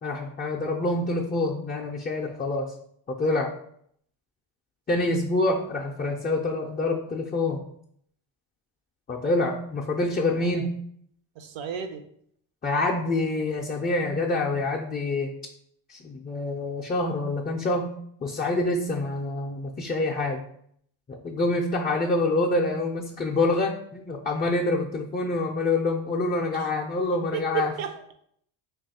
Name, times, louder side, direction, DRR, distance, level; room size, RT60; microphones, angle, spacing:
voice 1, 0.0-2.7 3.1-3.5 4.9-7.6 9.1-10.8 12.6-15.3 15.9-17.9 18.2-20.4 21.1-27.7, left 2 dB, 25° left, -2 dB, 0.3 m, -26 dB
voice 2, 11.4-12.0 26.5-26.7 27.3-28.1, right 8 dB, 75° right, 7 dB, 0.6 m, -33 dB
3.0 x 2.3 x 4.1 m, 0.67 s
cardioid pair, 85°, 46 cm